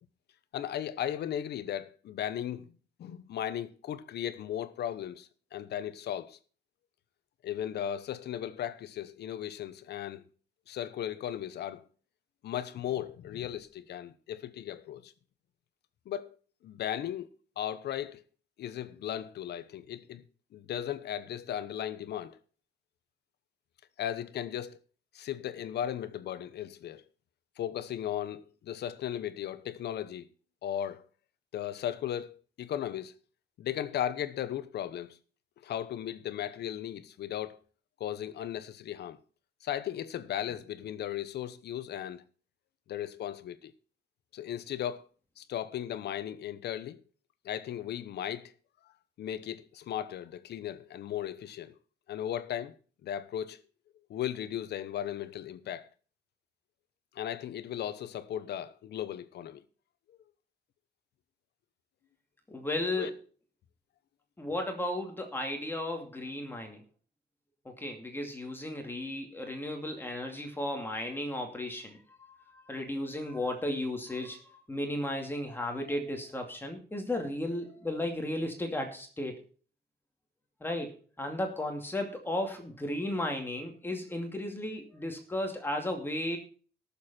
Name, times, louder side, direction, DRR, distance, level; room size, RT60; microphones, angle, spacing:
voice 1, 0.5-2.7 3.0-6.4 7.4-10.2 10.7-11.9 12.4-15.1 16.1-16.4 16.6-17.3 17.6-18.2 18.6-20.2 20.5-22.4 24.0-24.8 25.1-27.0 27.6-30.3 30.6-31.1 31.5-33.1 33.6-35.2 35.6-37.6 38.0-39.2 39.6-42.2 42.9-43.7 44.3-45.1 45.4-47.0 47.4-48.5 49.2-51.8 52.1-52.8 53.0-53.6 54.1-55.9 57.1-59.6 60.1-60.2 63.0-63.1, left 10 dB, 80° left, 1.0 m, -36 dB
voice 2, 62.5-63.1 64.4-66.8 67.6-72.0 72.5-74.4 74.7-79.3 80.6-86.4, left 1 dB, 15° left, 2.4 m, -34 dB
18.0 x 7.2 x 4.4 m
cardioid pair, 150°, 17 cm